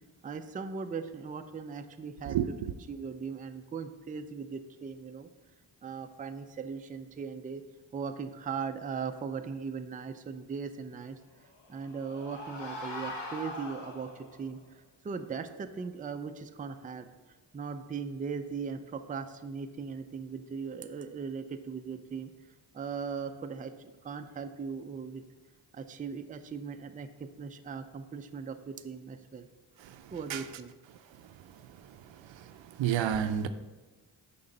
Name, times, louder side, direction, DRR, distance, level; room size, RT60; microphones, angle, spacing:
voice 1, 0.2-2.4 2.9-5.3 5.8-7.6 7.9-11.2 11.7-22.3 22.7-25.2 25.7-29.5 30.1-30.7, right 5 dB, 20° right, 0.4 m, -39 dB
sound 1, 11.4-14.4, left 1 dB, 65° left, 1.2 m, -41 dB
voice 2, 32.8-33.5, right 9 dB, 70° right, 0.6 m, -28 dB
5.7 x 3.9 x 5.2 m
cardioid pair, 55°, 47 cm